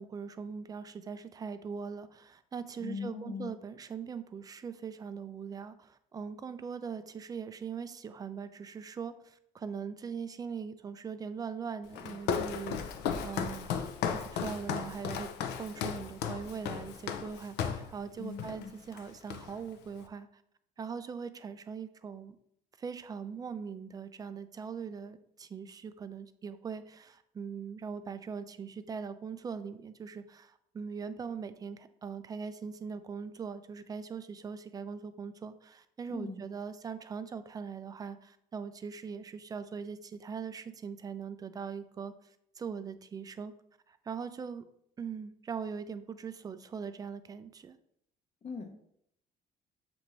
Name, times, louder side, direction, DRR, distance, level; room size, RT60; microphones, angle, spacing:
voice 1, 0.0-15.3 15.6-20.4 20.8-22.4 22.8-42.1 42.6-43.5 43.9-44.7 45.0-47.8, right 6 dB, 20° right, 11 dB, 0.3 m, -41 dB
voice 2, 2.8-3.5 18.2-18.7 36.1-36.4 48.4-48.7, left 5 dB, 40° left, 4 dB, 0.8 m, -40 dB
Walk footsteps, 11.9-17.9 18.4-18.6 18.9-19.7, left 7 dB, 85° left, 0.5 m, -35 dB
6.8 x 2.6 x 3.0 m, 0.73 s
cardioid pair, 110°, 17 cm